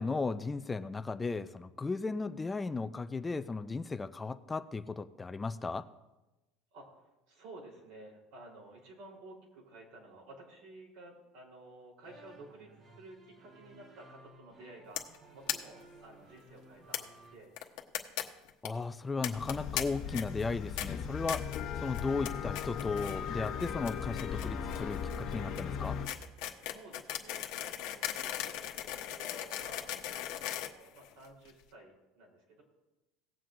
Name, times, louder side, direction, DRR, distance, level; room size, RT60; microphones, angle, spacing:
voice 1, 0.0-5.8 18.6-21.5 21.8-26.0, left 4 dB, 15° left, 11 dB, 0.4 m, -36 dB
voice 2, 6.7-15.0 15.3-17.7 26.6-32.6, right 2 dB, 75° right, -1 dB, 3.6 m, -53 dB
sound 1, 12.0-17.4, right 2 dB, 30° right, 1.4 m, -57 dB
sound 2, 15.0-15.2 15.5-15.6 15.8-15.9 16.1-16.2 16.9-17.0 17.6-18.2 18.5-18.7 19.2-19.8 20.1-20.4 20.8-20.9 21.3-21.6 21.9-22.3 22.5-23.2 23.4-31.5, left 13 dB, 70° left, 1.1 m, -37 dB
sound 3, 19.3-26.1, left 7 dB, 50° left, 1.3 m, -38 dB
19.0 x 7.7 x 2.5 m, 1.0 s
cardioid pair, 140°, 0 cm